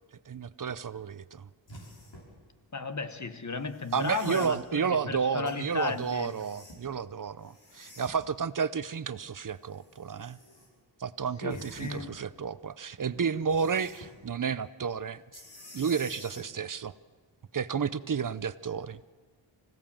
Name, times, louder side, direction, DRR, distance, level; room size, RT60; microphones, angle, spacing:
voice 1, 0.3-1.5 3.9-10.4 11.0-15.2 15.7-16.9 17.5-19.0, right 6 dB, 45° right, 16 dB, 0.7 m, -31 dB
sound 1, 1.7-2.3 3.7-4.5 5.5-6.9 7.4-8.3 9.4-10.7 11.5-12.2 13.5-14.1 15.3-16.5 18.2-18.3, left 1 dB, 70° left, 6.2 m, -49 dB
voice 2, 2.7-6.4 11.4-12.2, left 4 dB, 40° left, 9 dB, 1.3 m, -34 dB
25.5 x 16.5 x 7.4 m, 1.5 s
wide cardioid pair, 110°, 45 cm